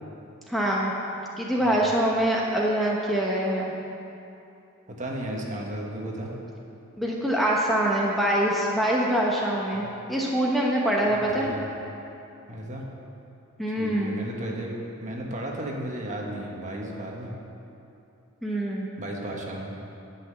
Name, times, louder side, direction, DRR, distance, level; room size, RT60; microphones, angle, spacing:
voice 1, 0.5-0.9 1.4-3.7 7.0-11.5 13.6-14.2 18.4-18.9, right 1 dB, ahead, -4 dB, 0.9 m, -24 dB
voice 2, 4.9-6.3 9.7-9.9 11.0-11.6 12.5-12.9 13.8-14.7 15.0-17.3 19.0-19.7, right 1 dB, 35° right, -1 dB, 1.5 m, -34 dB
11.0 x 5.9 x 8.2 m, 2.8 s
head